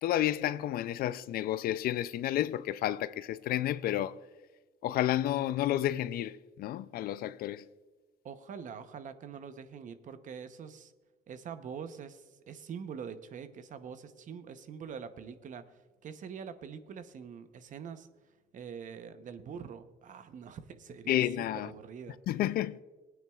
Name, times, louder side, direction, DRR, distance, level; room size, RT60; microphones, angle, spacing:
voice 1, 0.0-4.2 4.8-7.6 21.1-21.7 22.3-22.8, left 13 dB, 65° left, 0.4 m, -31 dB
voice 2, 8.2-10.9 11.3-18.1 18.5-22.2, right 7 dB, 50° right, 0.8 m, -44 dB
20.5 x 9.2 x 2.4 m
cardioid pair, 110°, 17 cm